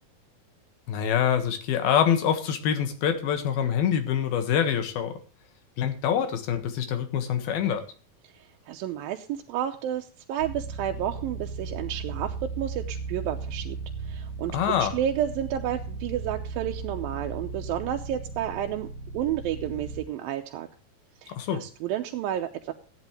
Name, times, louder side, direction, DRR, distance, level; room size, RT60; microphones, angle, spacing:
voice 1, 0.9-5.2 5.8-7.8 14.5-14.9 21.3-21.6, left 8 dB, 85° left, 7 dB, 3.5 m, -25 dB
voice 2, 8.3-13.8 14.0-18.9 19.1-20.7 21.2-22.7, right 11 dB, 85° right, 3 dB, 2.5 m, -31 dB
sound 1, 10.4-20.0, right 4 dB, 40° left, 2.2 m, -36 dB
14.5 x 10.5 x 3.2 m, 0.38 s
omnidirectional pair, 4.2 m